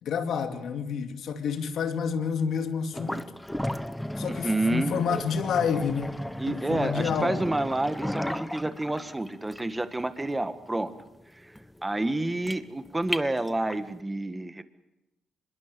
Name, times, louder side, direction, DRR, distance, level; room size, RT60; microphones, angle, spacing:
voice 1, 0.0-3.3 4.2-6.2 6.5-7.4, left 6 dB, 70° left, 6 dB, 2.4 m, -29 dB
sound 1, 2.9-13.9, left 1 dB, 5° left, 1.0 m, -35 dB
voice 2, 4.3-5.0 6.4-10.9 11.3-11.5 11.8-14.6, right 2 dB, 15° right, 10 dB, 1.6 m, -29 dB
25.0 x 21.5 x 6.8 m, 0.92 s
cardioid pair, 90°, 0 cm